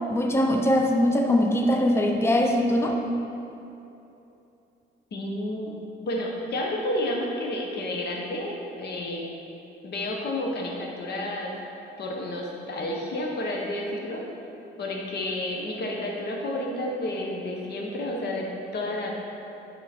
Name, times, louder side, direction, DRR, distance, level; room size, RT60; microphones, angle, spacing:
voice 1, 0.1-2.9, left 1 dB, 10° left, 2 dB, 0.6 m, -22 dB
voice 2, 5.1-5.8 6.0-9.3 9.8-11.6 12.0-14.2 14.8-19.1, left 1 dB, 55° left, -1 dB, 1.0 m, -30 dB
11.0 x 3.9 x 4.3 m, 2.9 s
cardioid pair, 90°, 20 cm